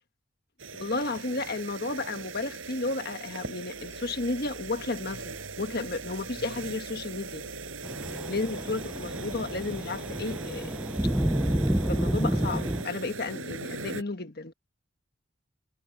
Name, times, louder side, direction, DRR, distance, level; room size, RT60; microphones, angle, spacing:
sound 1, 0.6-14.0, right 3 dB, 75° right, 6.8 m, -40 dB
voice 1, 0.7-7.4 8.3-10.8 11.9-14.5, left 3 dB, 50° left, 1.5 m, -33 dB
sound 2, 3.7-10.6, left 1 dB, 75° left, 8.0 m, -49 dB
sound 3, 7.8-12.8, right 1 dB, 5° right, 0.3 m, -29 dB
head